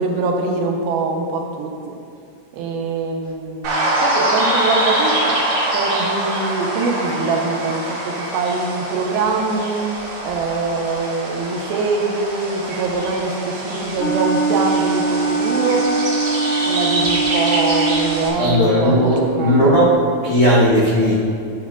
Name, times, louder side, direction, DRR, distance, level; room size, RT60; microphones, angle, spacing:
voice 1, 0.0-1.9 2.5-5.4 5.7-9.9 10.2-15.9 16.7-19.7, right 3 dB, 85° right, 1 dB, 2.7 m, -23 dB
sound 1, 3.6-18.3, right 1 dB, 65° right, 3.1 m, -24 dB
Wind instrument woodwind instrument, 14.0-18.2, right 3 dB, 65° left, 2.2 m, -21 dB
voice 2, 18.4-19.9 20.2-21.2, equal, 80° left, -9 dB, 1.1 m, -15 dB
11.0 x 7.3 x 2.4 m, 2.4 s
omnidirectional pair, 4.3 m